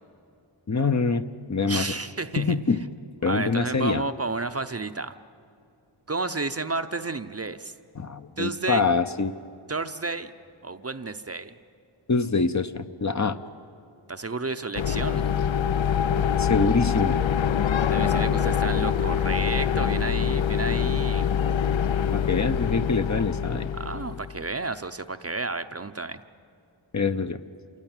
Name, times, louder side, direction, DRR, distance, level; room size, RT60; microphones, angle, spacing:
voice 1, 0.7-1.2 1.5-1.9 2.4-2.8 3.2-4.0 8.0-9.3 12.1-13.4 16.4-17.2 22.1-23.7 26.9-27.4, left 4 dB, 35° left, 9 dB, 0.8 m, -24 dB
voice 2, 1.7-2.6 3.2-5.1 6.1-7.7 8.4-8.8 9.7-10.3 10.6-11.5 14.1-15.4 17.9-21.3 23.8-26.2, right 3 dB, 30° right, 9 dB, 0.7 m, -31 dB
sound 1, 14.8-24.4, left 8 dB, 75° left, 0.6 m, -24 dB
26.5 x 17.0 x 9.0 m, 2.4 s
wide cardioid pair, 75°, 47 cm